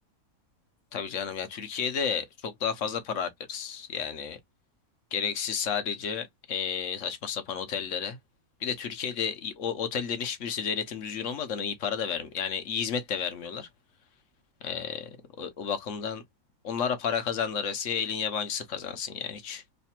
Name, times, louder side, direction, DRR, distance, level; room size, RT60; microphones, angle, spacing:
voice 1, 0.9-4.4 5.1-8.2 8.6-13.7 14.6-16.2 16.6-19.6, left 7 dB, 60° left, 1.1 m, -32 dB
3.3 x 2.3 x 4.3 m
omnidirectional pair, 1.5 m